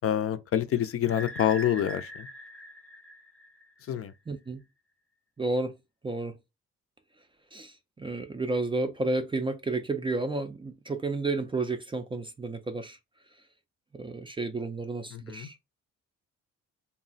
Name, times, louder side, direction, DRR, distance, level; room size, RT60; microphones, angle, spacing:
voice 1, 0.0-2.3 3.9-4.1 15.1-15.5, left 10 dB, 50° left, 0.4 m, -27 dB
sound 1, 1.1-3.9, equal, 5° left, 0.7 m, -42 dB
voice 2, 4.3-4.6 5.4-5.7 6.0-6.4 7.5-13.0 13.9-15.6, right 3 dB, 15° right, 0.4 m, -31 dB
2.3 x 2.0 x 3.8 m
cardioid pair, 90°, 30 cm